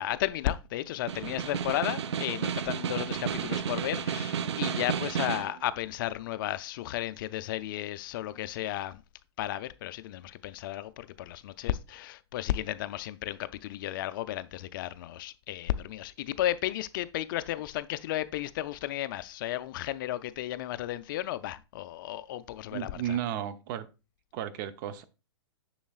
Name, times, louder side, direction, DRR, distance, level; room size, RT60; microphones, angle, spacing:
voice 1, 0.0-9.0 9.4-23.2, left 13 dB, 50° left, 0.4 m, -34 dB
Snare drum, 0.9-5.6, right 7 dB, 80° right, 0.6 m, -32 dB
voice 2, 22.7-23.8 24.3-25.0, right 10 dB, 45° right, 0.7 m, -34 dB
7.0 x 6.4 x 2.4 m
hypercardioid pair, 135°, 14 cm